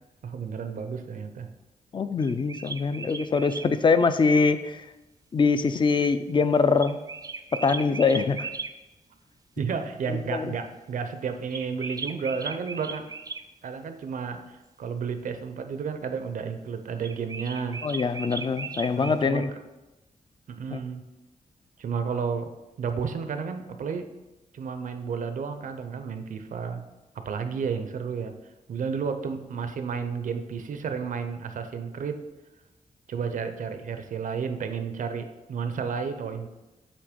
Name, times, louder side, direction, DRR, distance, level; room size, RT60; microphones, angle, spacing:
voice 1, 0.2-1.5 9.6-13.1 13.6-17.8 19.0-19.4 20.5-21.0 21.8-22.5 22.8-24.1 24.5-26.8 27.2-28.4 28.7-32.2 33.1-36.5, right 6 dB, 80° right, 8 dB, 0.6 m, -32 dB
voice 2, 1.9-4.8 5.3-7.0 7.5-8.5 10.1-10.5 17.8-19.5 20.7-20.8, left 4 dB, 40° left, 11 dB, 0.4 m, -23 dB
sound 1, 2.2-3.7 6.8-8.7 11.5-13.4 17.0-19.2, right 4 dB, 30° right, 0.4 m, -37 dB
8.3 x 3.0 x 5.1 m, 1.0 s
wide cardioid pair, 110°, 13 cm